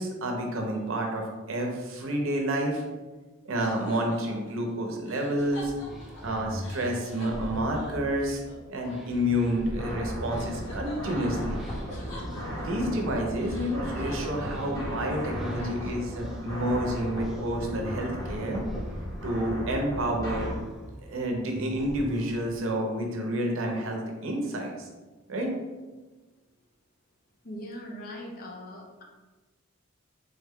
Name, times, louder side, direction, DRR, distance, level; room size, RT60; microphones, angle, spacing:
voice 1, 0.0-2.8 3.4-5.7 6.2-8.4 8.7-11.7 12.5-18.6 19.2-20.5 21.0-24.9 25.3-25.5, equal, 80° right, 1 dB, 0.6 m, -29 dB
sound 1, 3.6-10.0 10.3-13.0 13.3-16.2, left 2 dB, 90° left, 1.4 m, -47 dB
sound 2, 5.6-22.8, equal, ahead, 0.3 m, -41 dB
sound 3, 9.8-20.5, equal, 15° left, 0.8 m, -36 dB
voice 2, 27.4-29.0, equal, 45° left, 1 dB, 0.6 m, -40 dB
3.4 x 2.2 x 3.5 m, 1.2 s
head